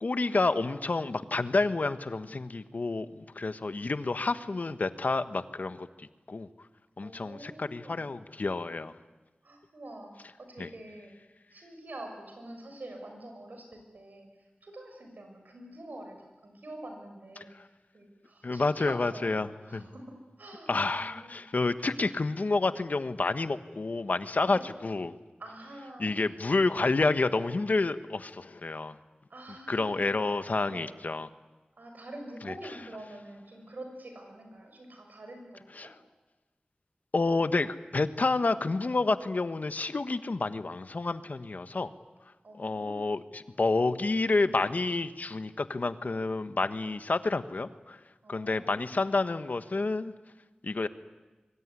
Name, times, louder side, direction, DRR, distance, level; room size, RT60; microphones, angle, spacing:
voice 1, 0.0-6.5 7.0-8.9 10.6-10.7 17.4-17.6 18.4-19.9 20.7-25.2 26.0-29.0 29.7-31.3 32.4-32.5 35.8-35.9 37.1-41.9 42.6-48.0 48.3-50.1 50.6-50.9, left 3 dB, 70° left, 11 dB, 1.2 m, -29 dB
voice 2, 7.0-8.0 9.4-10.1 10.4-11.1 11.5-14.3 14.6-16.2 16.4-17.5 17.9-21.4 24.5-24.7 25.4-26.2 27.3-27.5 29.3-30.2 30.7-30.9 31.8-35.9 42.4-43.0 48.2-49.0, right 1 dB, 85° right, 4 dB, 6.8 m, -46 dB
24.0 x 24.0 x 9.7 m, 1.2 s
wide cardioid pair, 60°, 3 cm